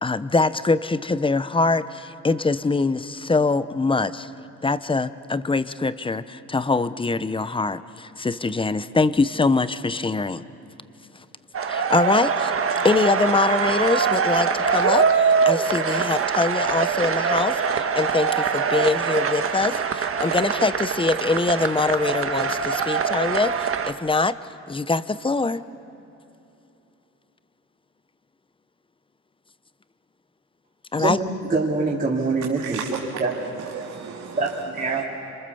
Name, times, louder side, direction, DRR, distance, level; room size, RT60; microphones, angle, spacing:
voice 1, 0.0-4.3 4.6-10.4 11.7-12.5 12.8-24.4 24.7-25.7 30.9-31.2, left 3 dB, 15° left, 14 dB, 0.8 m, -23 dB
sound 1, 11.5-23.9, right 6 dB, 45° right, 1.4 m, -23 dB
voice 2, 31.5-32.8 33.2-33.3 34.4-35.0, right 3 dB, 30° right, -4 dB, 3.1 m, -24 dB
voice 3, 32.6-35.0, right 7 dB, 85° right, -1 dB, 2.3 m, -35 dB
27.5 x 26.0 x 7.0 m, 3.0 s
cardioid pair, 90°, 30 cm